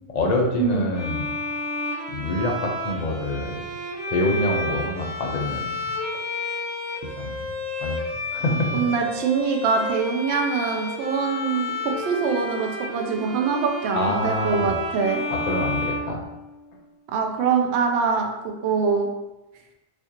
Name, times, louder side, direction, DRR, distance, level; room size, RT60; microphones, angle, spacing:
voice 1, 0.1-1.3 2.1-3.6 4.1-5.6 7.2-7.5 7.8-8.0 8.3-8.8 13.9-14.7 15.3-16.2, left 2 dB, 55° left, 1 dB, 0.5 m, -26 dB
Bowed string instrument, 0.9-16.8, left 1 dB, 15° left, 0.8 m, -31 dB
voice 2, 8.5-15.2 17.1-19.1, right 5 dB, 65° right, 2 dB, 0.8 m, -24 dB
4.2 x 2.4 x 2.8 m, 0.99 s
omnidirectional pair, 1.3 m